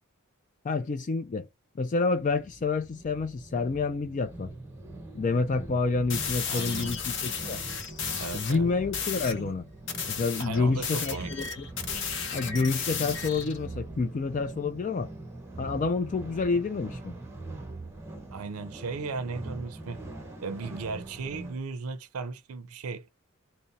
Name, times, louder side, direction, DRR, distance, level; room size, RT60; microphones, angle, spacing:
voice 1, 0.6-1.5 1.8-4.5 5.1-7.6 8.3-9.6 10.1-11.7 12.3-15.1 15.6-17.1, left 4 dB, 35° left, 0.3 m, -28 dB
sound 1, 2.2-21.6, right 2 dB, 10° right, 0.9 m, -42 dB
sound 2, 6.1-8.6 8.9-9.4 9.9-13.6, left 6 dB, 55° left, 0.7 m, -34 dB
voice 2, 6.5-6.9 8.2-8.7 10.4-11.3 18.3-20.0 20.4-23.1, right 4 dB, 85° right, 0.5 m, -36 dB
3.8 x 2.1 x 4.0 m
head